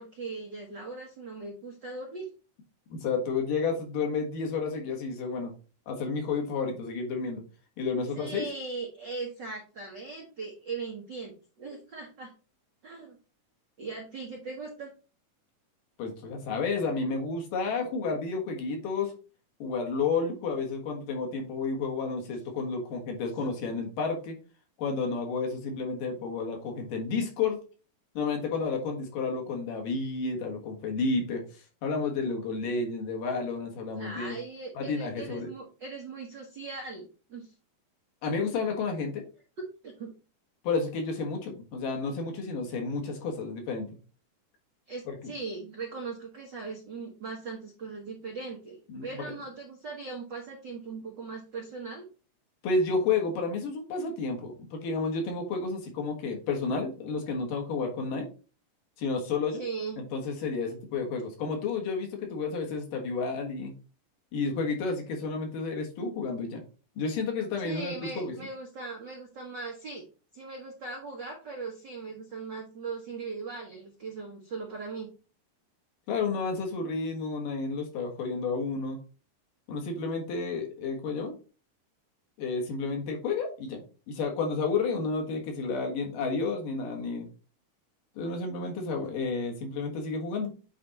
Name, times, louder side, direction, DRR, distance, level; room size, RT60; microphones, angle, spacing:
voice 1, 0.0-2.3 8.1-12.3 12.8-13.2 13.8-14.9 34.0-37.5 39.6-40.1 44.9-52.0 59.6-60.0 67.6-70.0 70.3-75.1, right 4 dB, 75° right, 0 dB, 1.0 m, -39 dB
voice 2, 2.9-5.5 5.9-7.4 7.8-8.4 16.0-19.1 19.6-24.4 24.8-27.6 28.1-31.4 31.8-34.4 34.7-35.5 38.2-39.2 40.6-43.9 45.1-45.3 48.9-49.1 52.6-58.3 59.0-59.6 60.0-63.7 64.3-66.6 67.0-68.3 76.1-79.0 79.7-81.4 82.4-83.8 84.1-87.3 88.2-90.5, left 4 dB, 75° left, 2 dB, 3.1 m, -31 dB
8.4 x 3.5 x 4.0 m, 0.35 s
omnidirectional pair, 4.0 m